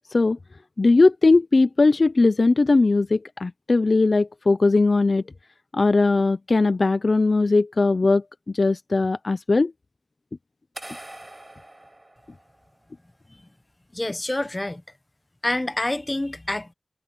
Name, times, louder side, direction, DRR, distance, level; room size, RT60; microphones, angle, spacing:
voice 1, 0.8-5.2 5.7-8.2 8.5-9.7, left 3 dB, 70° left, 0.5 m, -19 dB
sound 1, 10.7-12.8, right 1 dB, 30° right, 6.0 m, -43 dB
voice 2, 13.9-14.8 15.4-16.7, left 1 dB, 35° left, 1.2 m, -27 dB
wide cardioid pair, 50°, 0 cm